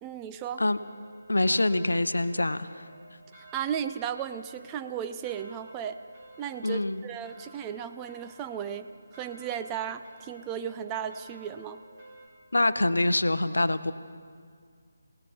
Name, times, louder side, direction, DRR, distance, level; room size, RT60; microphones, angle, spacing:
voice 1, 0.0-0.6 3.5-6.0 6.4-11.8, right 8 dB, 15° right, 9 dB, 0.4 m, -35 dB
sound 1, 0.7-12.3, right 2 dB, 35° right, 4.8 m, -53 dB
voice 2, 1.3-2.8 6.6-7.0 12.5-13.9, left 2 dB, 75° left, 13 dB, 0.7 m, -25 dB
28.5 x 17.5 x 2.8 m, 2.1 s
figure-of-eight pair, 150°, 0 cm